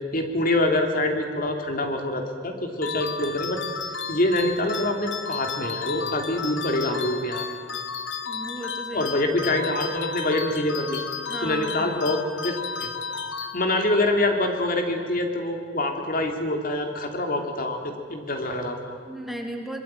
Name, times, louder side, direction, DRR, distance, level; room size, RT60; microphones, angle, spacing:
voice 1, 0.1-3.6 4.1-7.4 8.9-11.0 11.4-12.9 13.5-18.9, left 1 dB, 50° left, 4 dB, 3.0 m, -25 dB
sound 1, 2.8-14.0, left 5 dB, 90° left, 1.7 m, -33 dB
voice 2, 8.2-9.1 11.3-11.9 19.1-19.8, equal, ahead, 2 dB, 2.7 m, -35 dB
25.0 x 22.0 x 9.1 m, 2.1 s
head